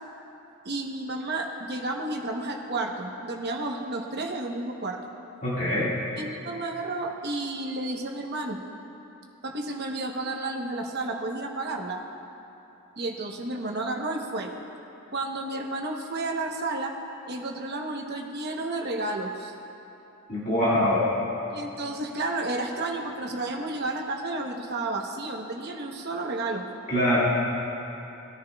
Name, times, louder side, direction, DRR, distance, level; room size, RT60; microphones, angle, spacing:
voice 1, 0.6-5.0 6.2-8.6 9.4-12.0 13.0-14.5 15.1-16.9 17.3-19.5 21.5-26.6, right 2 dB, 45° right, 2 dB, 1.0 m, -31 dB
voice 2, 5.4-5.9 20.3-21.1 26.9-27.3, left 1 dB, 35° left, -10 dB, 2.0 m, -23 dB
19.5 x 10.0 x 2.3 m, 2.9 s
head